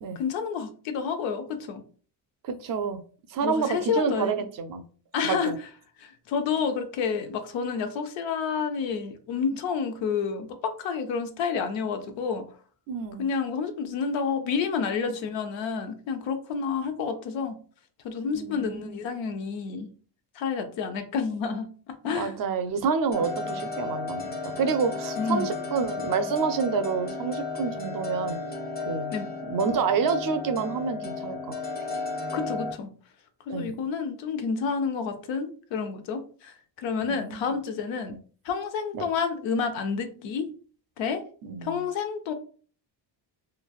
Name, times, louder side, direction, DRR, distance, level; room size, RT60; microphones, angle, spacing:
voice 1, 0.2-1.8 3.4-4.4 5.1-5.5 6.0-12.4 13.2-17.6 18.0-19.9 20.4-22.3 25.2-25.5 29.1-29.3 32.3-32.9 33.5-38.1 38.4-40.5 41.0-41.2 41.6-42.3, left 5 dB, 90° left, 7 dB, 0.6 m, -29 dB
voice 2, 2.4-3.0 3.3-4.8 5.2-5.6 12.9-13.2 18.3-19.0 22.1-28.4 28.9-29.1 29.5-31.9 33.5-33.7 37.0-37.5 38.1-38.2 38.9-39.0 41.4-41.9, right 5 dB, 50° right, 9 dB, 0.5 m, -28 dB
sound 1, 23.1-32.7, left 4 dB, 25° left, 0.4 m, -34 dB
3.1 x 2.2 x 2.3 m, 0.42 s
cardioid pair, 100°, 44 cm